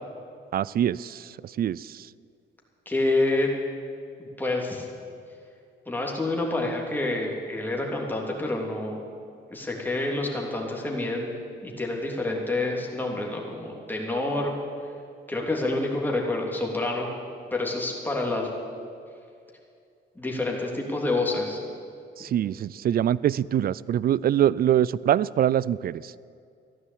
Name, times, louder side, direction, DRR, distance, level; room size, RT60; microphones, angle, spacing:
voice 1, 0.5-2.1 22.2-26.1, right 10 dB, 50° right, 21 dB, 0.4 m, -24 dB
voice 2, 2.8-3.5 4.2-4.9 5.9-9.0 9.5-11.3 11.6-14.5 15.3-17.1 17.5-18.5 20.1-21.6, left 2 dB, 10° left, -1 dB, 3.2 m, -28 dB
14.0 x 11.0 x 8.7 m, 2.4 s
cardioid pair, 90°, 20 cm